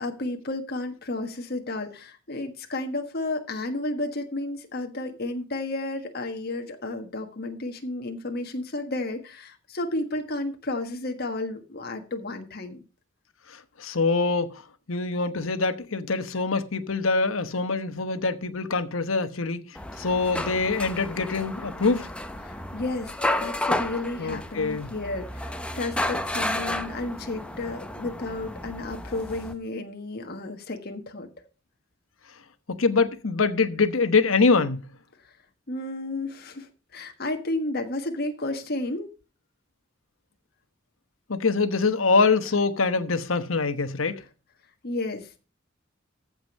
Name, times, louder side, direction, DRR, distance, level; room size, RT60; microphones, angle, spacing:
voice 1, 0.0-12.8 22.4-23.1 23.4-31.3 35.7-39.1 44.8-45.3, left 2 dB, 50° left, 1.5 m, -32 dB
voice 2, 13.5-14.6 14.9-22.1 24.2-24.9 32.7-34.8 41.3-44.2, left 4 dB, 85° left, 1.1 m, -24 dB
sound 1, 19.7-29.5, left 1 dB, 5° left, 0.8 m, -32 dB
14.5 x 5.2 x 5.3 m
head